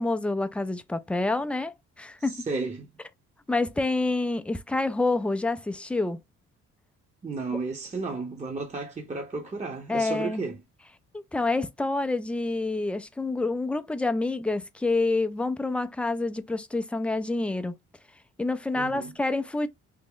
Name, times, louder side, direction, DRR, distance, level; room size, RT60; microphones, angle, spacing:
voice 1, 0.0-2.5 3.5-6.2 9.9-10.4 11.1-17.8 18.4-19.7, left 2 dB, 5° left, 0.4 m, -27 dB
voice 2, 2.3-2.9 7.2-10.6 18.7-19.1, right 3 dB, 25° right, 0.9 m, -33 dB
3.5 x 2.1 x 3.6 m
cardioid pair, 90°, 30 cm